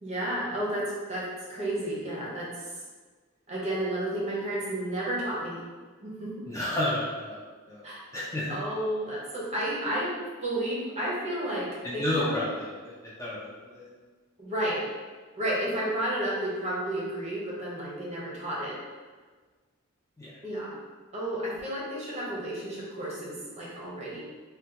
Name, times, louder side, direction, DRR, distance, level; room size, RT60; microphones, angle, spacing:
voice 1, 0.0-2.7 3.5-5.6 6.0-6.3 7.8-8.0 8.5-10.1 10.4-12.3 14.4-14.8 15.4-18.8 20.4-20.8 21.1-24.2, right 1 dB, 30° right, -5 dB, 0.7 m, -32 dB
voice 2, 6.5-7.4 7.7-7.8 8.1-8.6 11.8-13.9 20.2-20.3, left 1 dB, 15° left, -7 dB, 0.3 m, -31 dB
3.3 x 2.2 x 2.8 m, 1.4 s
head